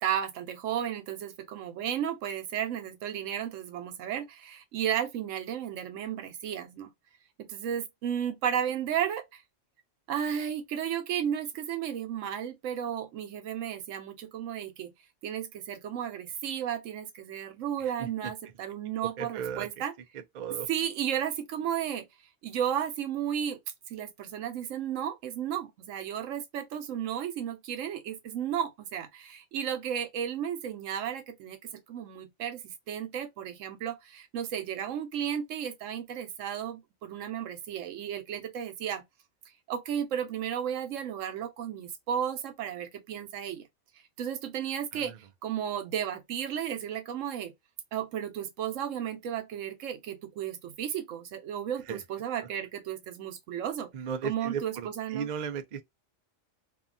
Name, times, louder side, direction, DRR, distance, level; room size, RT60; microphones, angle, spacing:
voice 1, 0.0-6.9 7.4-9.4 10.1-14.9 15.2-19.9 20.7-22.1 22.4-23.6 23.9-31.6 31.9-39.0 39.7-43.6 44.2-47.5 47.9-53.9 54.2-55.3, right 9 dB, 90° right, 1.0 m, -33 dB
voice 2, 19.2-19.7 20.4-20.7 44.9-45.0 51.9-52.0 53.9-55.8, right 7 dB, 70° right, 0.4 m, -35 dB
2.7 x 2.2 x 2.5 m
omnidirectional pair, 1.3 m